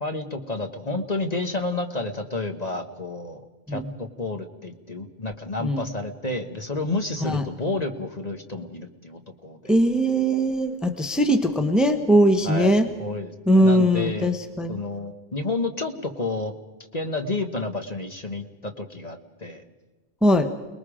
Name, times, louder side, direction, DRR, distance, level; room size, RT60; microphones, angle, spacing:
voice 1, 0.0-3.4 3.7-9.7 12.4-14.3 14.7-16.5 16.9-19.6, left 2 dB, 40° left, 5 dB, 1.4 m, -30 dB
voice 2, 9.7-12.9 13.5-14.8 20.2-20.5, equal, ahead, 7 dB, 1.1 m, -20 dB
29.5 x 20.5 x 5.0 m, 1.2 s
omnidirectional pair, 1.1 m